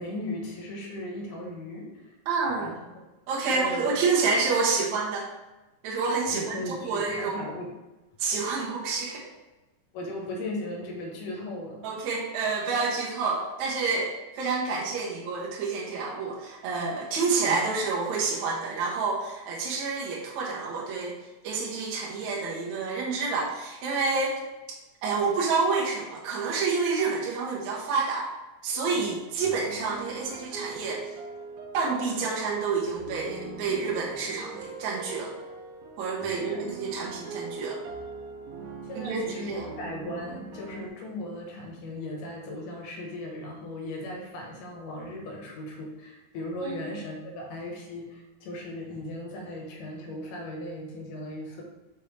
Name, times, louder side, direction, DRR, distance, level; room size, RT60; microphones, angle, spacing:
voice 1, 0.0-2.1 2.6-2.8 3.5-3.9 6.3-7.7 8.6-8.7 9.9-11.8 28.9-29.2 36.3-37.3 38.8-51.6, left 1 dB, 90° left, 0 dB, 2.8 m, -37 dB
voice 2, 2.3-2.7 3.3-5.3 5.8-7.4 8.2-9.3 11.8-21.2 21.4-24.4 25.0-28.3 28.6-31.1 31.7-35.3 36.0-37.8 38.9-39.6 46.6-46.8, right 4 dB, 70° right, -4 dB, 2.2 m, -28 dB
sound 1, 28.7-40.9, right 3 dB, 85° right, 2.4 m, -41 dB
5.5 x 5.4 x 3.3 m, 1.1 s
omnidirectional pair, 3.6 m